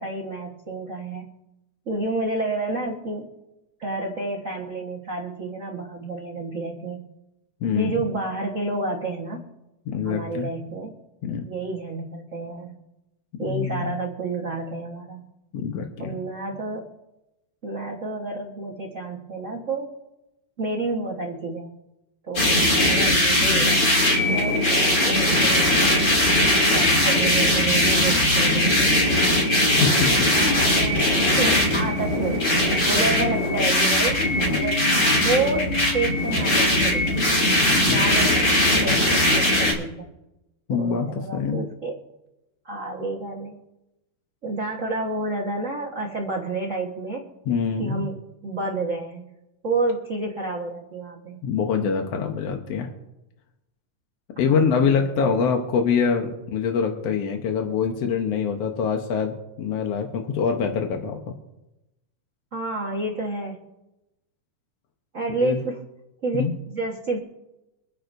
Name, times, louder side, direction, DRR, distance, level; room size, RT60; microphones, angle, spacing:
voice 1, 0.0-1.4 1.8-3.3 3.8-7.0 7.7-9.5 10.1-10.9 11.4-12.8 13.4-15.2 16.0-16.9 17.6-19.9 20.6-21.7 22.2-22.6 22.9-26.4 26.7-28.9 30.3-31.1 31.4-32.4 32.8-34.2 34.5-34.9 35.2-37.4 37.9-38.6 38.8-40.1 40.7-42.0 42.6-43.6 44.4-47.2 47.8-49.3 49.6-51.4 54.3-55.4 62.5-63.6 65.1-65.9 66.2-67.2, right 3 dB, 75° right, -3 dB, 0.7 m, -30 dB
voice 2, 7.6-8.0 9.9-10.5 11.2-11.5 13.5-13.9 15.5-16.2 29.8-30.3 37.9-38.1 40.7-41.6 47.5-48.0 51.4-52.9 54.4-61.2 65.4-65.6 66.3-66.5, left 6 dB, 65° left, 3 dB, 1.7 m, -24 dB
sound 1, 22.4-39.7, left 1 dB, 30° left, 3.3 m, -20 dB
26.0 x 9.7 x 2.7 m, 0.96 s
omnidirectional pair, 3.8 m